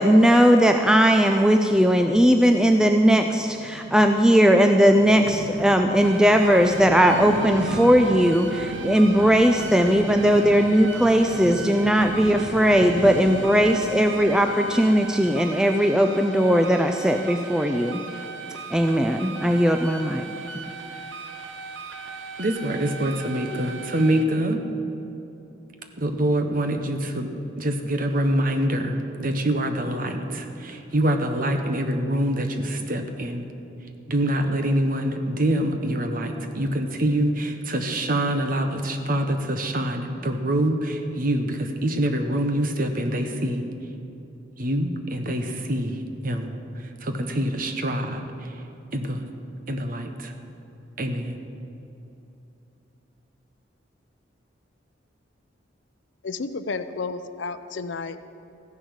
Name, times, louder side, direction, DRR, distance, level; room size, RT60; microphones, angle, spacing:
voice 1, 0.0-18.0 18.7-20.2, equal, 5° right, 5 dB, 0.4 m, -18 dB
sound 1, 1.7-17.1, right 2 dB, 70° right, 0.7 m, -37 dB
sound 2, 6.0-24.2, right 4 dB, 85° right, 1.2 m, -38 dB
voice 2, 22.4-24.6 26.0-27.3 27.6-33.5 34.1-43.6 44.6-45.9 46.2-46.5 47.0-48.2 48.9-49.2 49.7-50.3 51.0-51.4, right 1 dB, 45° right, 6 dB, 1.1 m, -25 dB
voice 3, 56.2-58.3, left 4 dB, 75° left, 11 dB, 0.6 m, -32 dB
14.5 x 10.5 x 6.4 m, 2.9 s
head